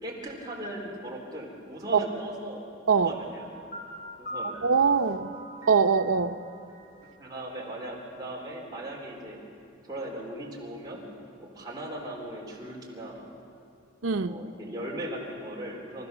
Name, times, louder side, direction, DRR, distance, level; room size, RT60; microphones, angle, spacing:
voice 1, 0.0-2.7 2.9-3.5 4.2-4.6 7.2-9.4 9.8-11.0 11.4-13.3 14.2-16.1, right 1 dB, 20° right, -3 dB, 3.7 m, -38 dB
Piano, 3.0-7.8, equal, 40° left, 6.7 m, -43 dB
voice 2, 4.6-5.3 5.7-6.4 14.0-14.4, right 5 dB, 90° right, 7 dB, 0.8 m, -22 dB
28.0 x 14.5 x 7.0 m, 2.5 s
head